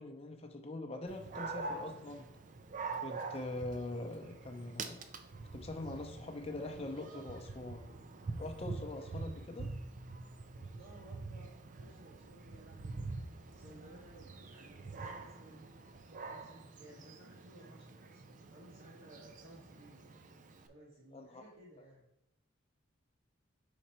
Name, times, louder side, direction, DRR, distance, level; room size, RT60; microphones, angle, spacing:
voice 1, 0.0-2.3 3.0-5.1 5.5-7.9 8.4-9.7 21.1-21.4, left 2 dB, 30° left, 4 dB, 0.6 m, -43 dB
Dog, 1.1-20.7, right 3 dB, 40° right, 0.4 m, -46 dB
voice 2, 10.5-13.2 13.5-15.6 16.3-20.1 20.7-22.1, right 1 dB, 70° right, -6 dB, 1.2 m, -58 dB
5.1 x 4.3 x 4.3 m, 0.81 s
head